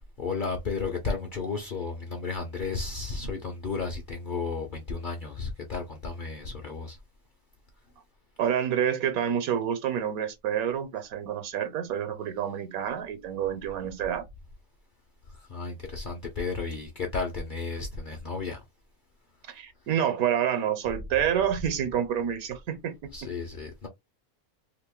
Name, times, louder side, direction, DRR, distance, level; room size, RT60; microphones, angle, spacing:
voice 1, 0.2-7.0 15.5-18.6 23.1-23.9, left 4 dB, 45° left, 0.7 m, -33 dB
voice 2, 8.4-14.2 19.5-22.9, right 9 dB, 80° right, 1.2 m, -28 dB
2.9 x 2.5 x 3.6 m
omnidirectional pair, 1.5 m